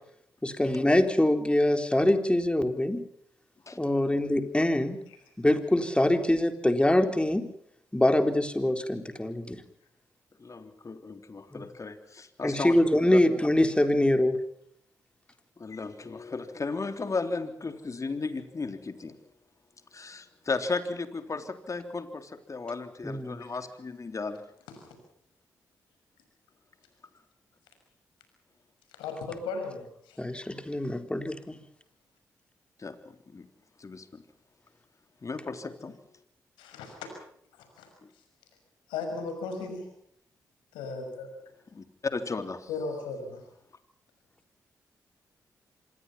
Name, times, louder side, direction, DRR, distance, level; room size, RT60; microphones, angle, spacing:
voice 1, 0.4-3.0 3.8-5.0 5.4-7.5 7.9-9.6 11.5-11.6 12.4-14.4 23.0-23.4 30.2-31.6, left 1 dB, 15° left, 7 dB, 4.0 m, -24 dB
voice 2, 10.4-12.7 13.1-13.2 15.6-19.2 19.9-24.4 32.8-33.0 33.3-33.4 33.8-34.2 35.2-35.9 38.0-38.1 41.7-42.7, left 3 dB, 45° left, 8 dB, 3.6 m, -35 dB
voice 3, 29.0-30.2 36.6-37.1 37.6-37.9 38.9-39.9 40.7-41.3 42.7-43.4, left 4 dB, 90° left, 5 dB, 6.2 m, -36 dB
26.5 x 21.5 x 5.8 m, 0.69 s
hypercardioid pair, 40°, 8 cm